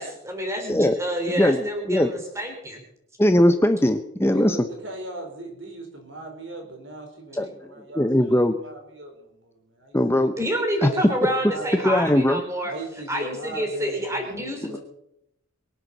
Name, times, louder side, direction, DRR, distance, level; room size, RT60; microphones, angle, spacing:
voice 1, 0.0-2.8 10.3-12.7 13.1-14.8, equal, 15° right, 3 dB, 3.7 m, -28 dB
voice 2, 3.2-4.6 7.4-7.5 8.0-8.6 9.9-10.3 10.8-10.9 11.8-12.4, left 1 dB, 10° left, 8 dB, 0.7 m, -19 dB
voice 3, 4.3-10.3 10.8-12.1 12.7-14.8, right 1 dB, 65° right, 3 dB, 4.5 m, -39 dB
23.0 x 8.1 x 7.2 m, 0.79 s
head